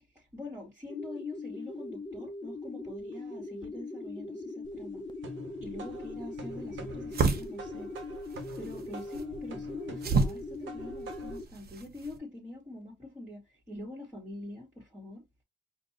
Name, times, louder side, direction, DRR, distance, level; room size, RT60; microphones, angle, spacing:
voice 1, 0.3-5.0 5.6-7.9 8.6-15.2, left 2 dB, 15° right, 2.1 m, -44 dB
sound 1, 0.9-11.5, left 2 dB, 25° left, 0.7 m, -41 dB
sound 2, 4.6-11.5, right 2 dB, 75° right, 1.3 m, -47 dB
sound 3, 5.8-12.2, right 4 dB, 50° right, 1.1 m, -33 dB
5.1 x 2.7 x 2.9 m
cardioid pair, 90°, 20 cm